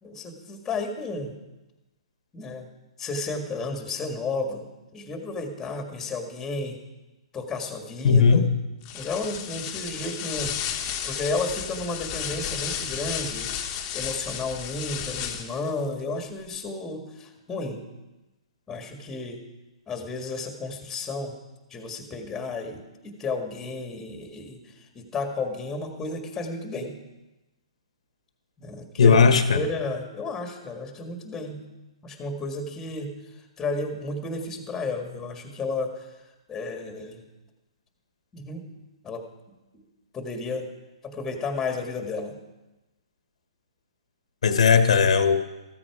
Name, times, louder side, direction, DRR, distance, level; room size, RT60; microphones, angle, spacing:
voice 1, 0.0-1.3 2.3-2.7 3.0-4.7 4.9-6.8 7.3-8.4 8.9-10.6 11.0-13.5 13.9-17.8 18.7-19.4 19.9-21.4 21.7-27.0 28.6-31.6 32.0-36.2 36.5-37.2 38.3-38.6 39.0-39.2 40.1-40.7 41.0-42.4, left 3 dB, 10° left, 4 dB, 1.8 m, -32 dB
voice 2, 8.0-8.5 29.0-29.6 44.4-45.5, left 5 dB, 70° left, 9 dB, 1.4 m, -17 dB
sound 1, 8.8-15.7, left 9 dB, 25° left, 1.3 m, -33 dB
14.5 x 14.0 x 4.9 m, 1.0 s
hypercardioid pair, 155°, 3 cm